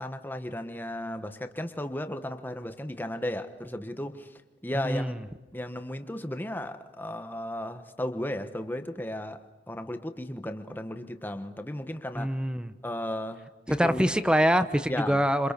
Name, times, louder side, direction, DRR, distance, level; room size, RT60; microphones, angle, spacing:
voice 1, 0.0-4.3 4.6-5.1 5.5-12.4 12.8-14.1 14.9-15.2, left 1 dB, 10° left, 1.2 m, -35 dB
voice 2, 4.8-5.2 12.1-12.7 13.7-15.5, equal, 5° right, 0.9 m, -25 dB
29.5 x 27.0 x 6.7 m
head